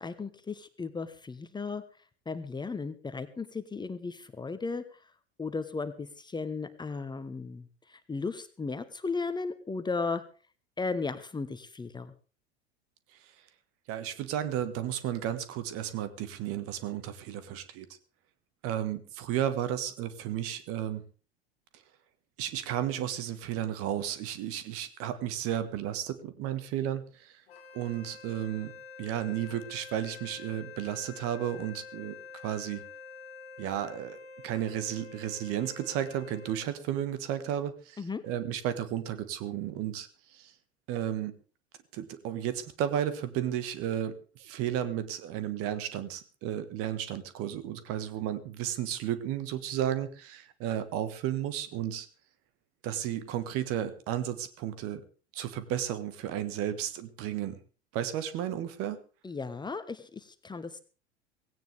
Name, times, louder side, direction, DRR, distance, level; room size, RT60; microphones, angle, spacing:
voice 1, 0.0-1.8 2.3-4.8 5.4-10.2 10.8-12.1 38.0-38.2 59.2-60.8, left 4 dB, 15° left, 11 dB, 1.2 m, -35 dB
voice 2, 13.9-18.0 18.6-21.0 21.7-21.8 22.4-27.4 27.7-32.1 32.4-32.8 33.6-34.2 34.4-40.5 40.9-41.4 41.9-52.1 52.8-55.0 55.3-57.6 57.9-59.0, right 11 dB, 45° right, 13 dB, 1.6 m, -33 dB
Wind instrument woodwind instrument, 27.5-36.8, left 5 dB, 65° left, 2.1 m, -47 dB
17.5 x 17.0 x 3.5 m, 0.37 s
figure-of-eight pair, 75°, 32 cm